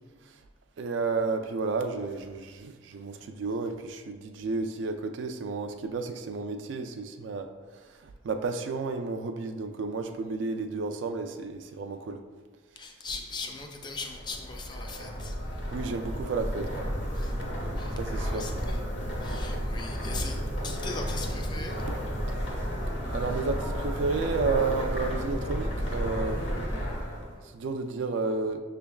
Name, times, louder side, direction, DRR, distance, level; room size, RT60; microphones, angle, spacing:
voice 1, 0.8-7.5 8.2-12.2 15.7-16.9 18.0-18.4 23.1-26.4 27.5-28.6, right 4 dB, 70° right, 6 dB, 0.3 m, -31 dB
voice 2, 12.8-15.8 17.1-17.3 17.8-18.8 19.2-20.4 20.6-21.9, left 4 dB, 25° left, 3 dB, 0.4 m, -40 dB
sound 1, 13.9-27.4, equal, 70° left, 1.0 m, -32 dB
6.0 x 3.4 x 2.2 m, 1.4 s
head